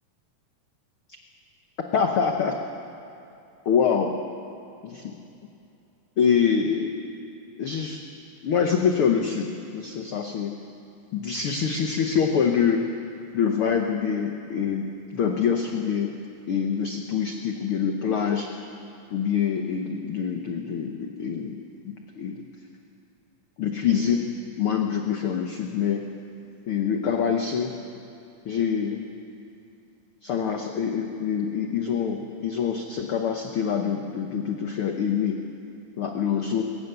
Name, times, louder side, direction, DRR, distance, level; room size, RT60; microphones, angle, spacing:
voice 1, 1.9-2.6 3.6-4.1 4.8-5.2 6.2-6.9 7.6-8.0 8.4-10.5 11.1-12.8 13.3-16.1 16.5-18.5 19.1-21.6 21.8-22.4 23.6-24.3 24.6-26.0 26.7-27.7 28.4-29.0 30.2-35.4 36.0-36.6, left 7 dB, 90° left, 3 dB, 1.1 m, -25 dB
22.0 x 18.5 x 6.8 m, 2.7 s
omnidirectional pair, 4.0 m